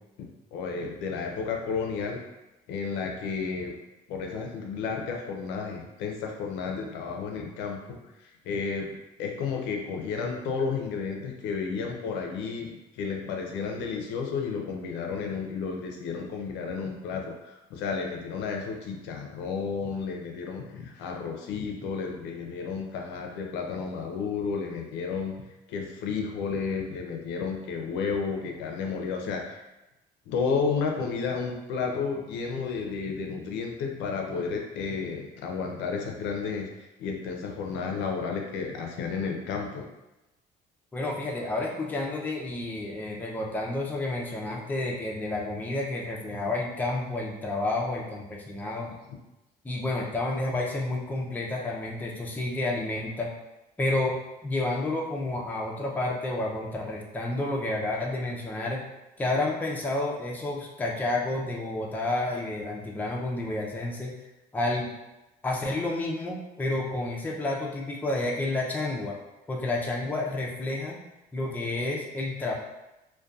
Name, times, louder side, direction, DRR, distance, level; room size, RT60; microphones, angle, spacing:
voice 1, 0.2-2.2 2.7-3.7 4.1-8.0 8.4-8.9 9.2-25.3 25.7-29.6 30.3-36.7 37.0-39.9 48.9-49.1, left 5 dB, 80° left, 1 dB, 0.5 m, -32 dB
voice 2, 40.9-48.9 49.6-53.3 53.8-58.9 59.2-64.2 64.5-64.9 65.4-69.1 69.5-71.0 71.3-72.5, left 2 dB, 10° left, -2 dB, 0.4 m, -30 dB
2.6 x 2.2 x 2.3 m, 1.0 s
cardioid pair, 110°, 18 cm